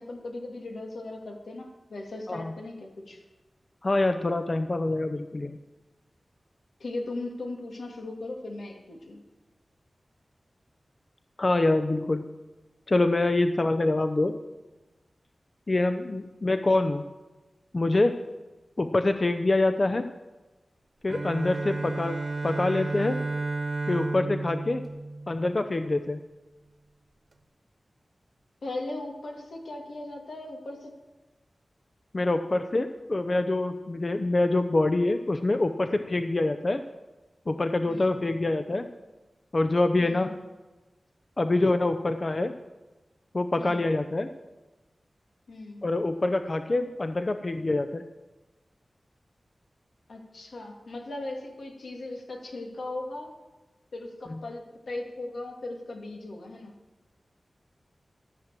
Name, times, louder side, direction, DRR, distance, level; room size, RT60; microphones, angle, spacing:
voice 1, 0.0-3.2 6.8-9.2 28.6-30.9 37.9-38.1 40.0-40.3 43.6-43.8 45.5-45.8 50.1-53.3 53.9-56.7, left 2 dB, 85° left, 1 dB, 2.3 m, -38 dB
voice 2, 3.8-5.6 11.4-12.3 12.9-14.4 15.7-17.0 17.7-18.1 18.8-20.1 21.0-22.2 22.4-23.2 23.9-24.8 25.3-26.2 32.1-36.8 37.5-38.9 39.5-40.3 41.4-42.5 43.3-44.3 45.8-48.0 54.3-54.4, left 2 dB, 40° left, 9 dB, 0.6 m, -25 dB
Bowed string instrument, 21.1-26.0, right 3 dB, 50° right, 1.1 m, -32 dB
13.5 x 7.6 x 7.5 m, 1.1 s
wide cardioid pair, 85°, 0 cm